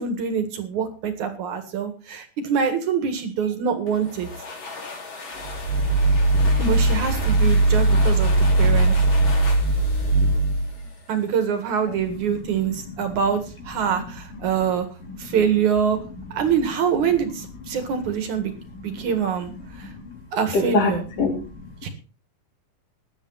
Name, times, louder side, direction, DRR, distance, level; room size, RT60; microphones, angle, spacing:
voice 1, 0.0-4.3 6.6-9.0 11.1-14.9 15.2-16.0 16.3-18.5 18.8-19.5 19.8-19.9 20.3-21.0 21.8-21.9, right 7 dB, 60° right, 8 dB, 3.1 m, -24 dB
sound 1, 3.9-11.3, left 3 dB, 40° left, 3.1 m, -37 dB
sound 2, 5.4-10.9, right 2 dB, 80° right, 2.6 m, -19 dB
voice 2, 11.9-13.3 13.7-15.4 16.1-16.2 17.0-18.0 18.4-19.2 19.5-20.2 20.5-21.7, left 3 dB, 65° left, 1 dB, 5.4 m, -31 dB
16.0 x 11.5 x 4.1 m, 0.34 s
omnidirectional pair, 4.0 m